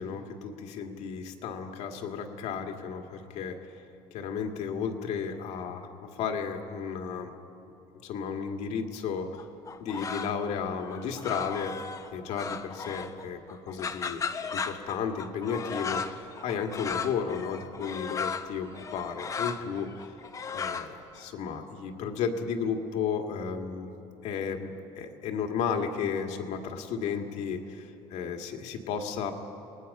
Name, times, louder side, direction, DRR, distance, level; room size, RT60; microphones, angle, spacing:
voice 1, 0.0-3.6 4.1-5.9 6.2-7.3 8.0-9.4 9.8-13.4 13.7-14.2 14.5-20.0 20.5-23.9 24.2-24.7 25.0-29.3, left 6 dB, 70° left, 3 dB, 2.0 m, -33 dB
sound 1, 9.4-10.5 10.8-13.2 13.5-21.2, left 5 dB, 25° left, 0.9 m, -36 dB
27.5 x 19.5 x 5.5 m, 2.8 s
cardioid pair, 140°, 12 cm